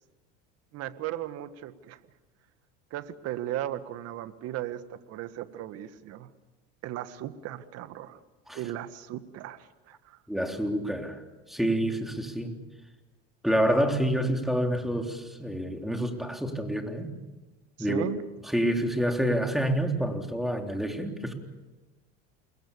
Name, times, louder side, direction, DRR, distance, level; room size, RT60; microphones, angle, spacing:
voice 1, 0.7-2.0 2.9-6.3 6.8-8.2 8.5-10.2 17.8-18.2, right 12 dB, 55° right, 11 dB, 1.7 m, -36 dB
voice 2, 10.3-11.2 11.5-12.6 13.4-17.1 17.8-18.1 18.5-21.3, equal, ahead, 3 dB, 3.6 m, -28 dB
29.0 x 22.0 x 7.0 m, 1.2 s
supercardioid pair, 105°, 30 cm